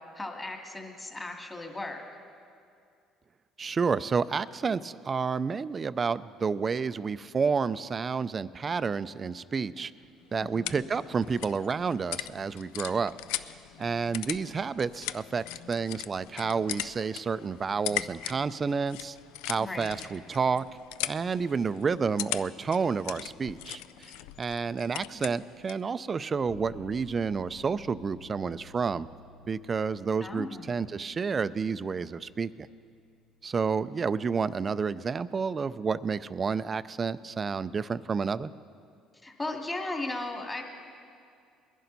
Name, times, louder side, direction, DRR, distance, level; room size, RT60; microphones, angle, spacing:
voice 1, 0.1-2.0 10.4-10.8 19.6-20.0 30.2-30.7 39.2-40.6, left 2 dB, 20° left, 2 dB, 2.2 m, -36 dB
voice 2, 3.6-9.9 10.3-19.2 19.5-20.6 21.1-29.1 29.5-32.7 33.4-38.5, right 5 dB, 35° right, 15 dB, 0.4 m, -30 dB
sound 1, 10.0-25.9, left 14 dB, 85° left, 0.3 m, -40 dB
Bass guitar, 26.5-36.3, left 3 dB, 60° left, 0.7 m, -56 dB
21.0 x 11.0 x 4.1 m, 2.3 s
supercardioid pair, 85°, 0 cm